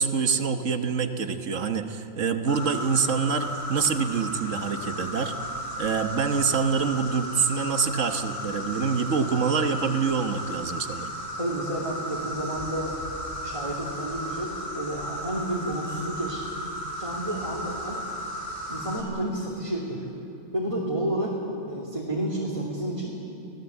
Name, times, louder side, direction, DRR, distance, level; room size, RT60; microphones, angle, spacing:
voice 1, 0.0-5.3 5.8-11.1, right 5 dB, 70° right, 8 dB, 1.6 m, -26 dB
Insect, 2.5-19.0, equal, 50° left, 3.9 m, -35 dB
voice 2, 11.3-13.0 13.4-16.4 17.0-18.0 18.7-20.1 20.5-21.4 21.7-23.2, right 1 dB, 25° right, -4 dB, 3.0 m, -30 dB
26.5 x 17.5 x 8.2 m, 3.0 s
omnidirectional pair, 1.3 m